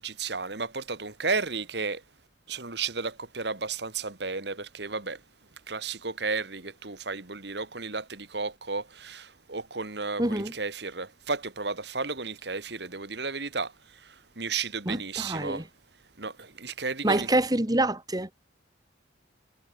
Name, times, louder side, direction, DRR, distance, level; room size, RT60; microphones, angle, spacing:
voice 1, 0.0-2.0 2.5-5.2 5.7-15.6 16.2-17.3, right 4 dB, 60° right, 2.1 m, -33 dB
voice 2, 10.2-10.5 14.9-15.7 17.0-18.3, right 1 dB, 20° right, 2.0 m, -26 dB
head